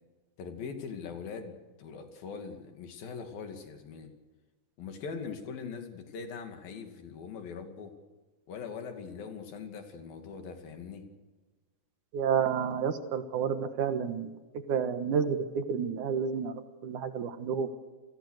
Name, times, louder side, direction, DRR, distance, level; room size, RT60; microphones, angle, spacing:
voice 1, 0.4-4.1 4.8-7.9 8.5-11.0, left 5 dB, 80° left, 5 dB, 4.3 m, -41 dB
voice 2, 12.1-16.5 16.8-17.7, right 7 dB, 65° right, 9 dB, 2.6 m, -30 dB
28.5 x 20.5 x 6.6 m, 1.3 s
omnidirectional pair, 4.1 m